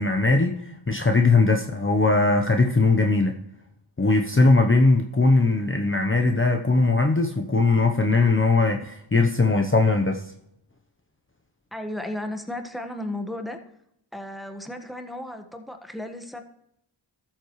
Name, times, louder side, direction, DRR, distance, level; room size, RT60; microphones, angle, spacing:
voice 1, 0.0-3.3 4.0-10.2, left 3 dB, 25° left, 4 dB, 0.9 m, -20 dB
voice 2, 11.7-13.6 14.1-16.4, left 1 dB, ahead, 5 dB, 1.4 m, -34 dB
13.5 x 7.6 x 3.2 m, 0.77 s
cardioid pair, 55°, 46 cm